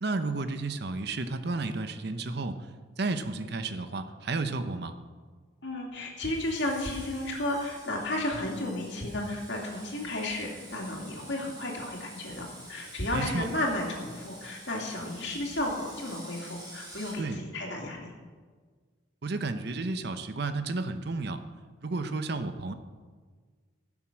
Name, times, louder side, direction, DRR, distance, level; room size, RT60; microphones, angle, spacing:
voice 1, 0.0-2.7 3.0-4.9 13.1-13.5 17.2-17.4 19.2-21.4 21.8-22.7, right 3 dB, 55° right, 9 dB, 0.7 m, -32 dB
voice 2, 5.6-18.1, left 1 dB, 60° left, -1 dB, 2.7 m, -33 dB
Screech, 6.2-17.2, right 1 dB, 20° right, 2.8 m, -49 dB
15.5 x 7.4 x 6.2 m, 1.5 s
head